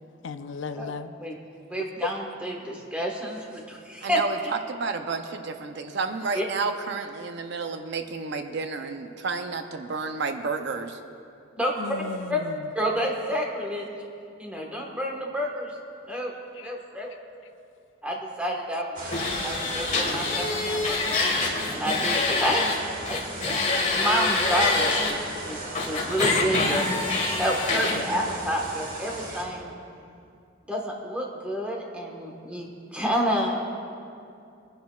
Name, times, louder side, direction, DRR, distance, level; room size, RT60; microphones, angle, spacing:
voice 1, 0.2-1.1 2.0-2.1 11.8-12.7 16.5-16.7, left 5 dB, 65° left, 10 dB, 0.4 m, -35 dB
voice 2, 1.7-4.2 6.3-6.4 11.5-11.7 12.3-12.4 12.7-13.9 14.4-15.7 16.1-16.3 16.6-17.1 18.0-18.9 19.4-22.6 23.1-23.2 23.5-26.9 27.4-29.7 30.7-33.6, equal, 5° right, -1 dB, 1.3 m, -29 dB
voice 3, 4.0-11.0, right 4 dB, 60° right, 7 dB, 0.6 m, -31 dB
sound 1, 19.0-29.4, right 1 dB, 40° right, 1.6 m, -37 dB
sound 2, 19.1-22.8 23.0-25.1 25.7-28.0, left 3 dB, 35° left, 1.5 m, -26 dB
24.5 x 10.5 x 2.4 m, 2.5 s
head